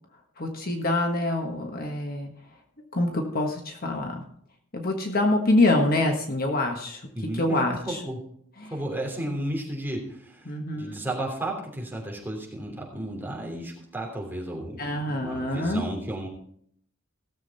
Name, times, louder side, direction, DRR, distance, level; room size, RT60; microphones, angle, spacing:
voice 1, 0.4-2.3 2.9-4.2 4.7-7.0 7.3-8.0 8.6-8.7 10.5-11.0 14.8-15.8, left 2 dB, 45° left, 2 dB, 1.5 m, -25 dB
voice 2, 7.1-8.2 8.7-16.3, right 1 dB, 10° right, -2 dB, 3.1 m, -33 dB
16.5 x 7.5 x 4.2 m, 0.66 s
head